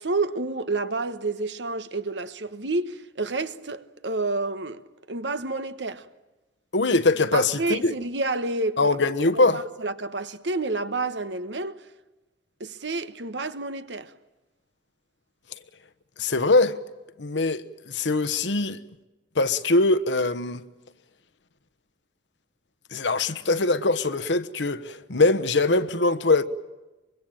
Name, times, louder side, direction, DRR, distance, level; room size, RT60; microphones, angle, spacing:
voice 1, 0.0-4.8 5.1-6.1 7.3-8.9 9.3-11.7 12.6-14.1, right 3 dB, 80° right, 1.2 m, -29 dB
voice 2, 6.7-7.9 8.8-9.6 16.2-16.8 17.2-18.8 19.4-20.6 22.9-26.4, left 3 dB, 90° left, 1.1 m, -22 dB
24.5 x 22.5 x 8.9 m
head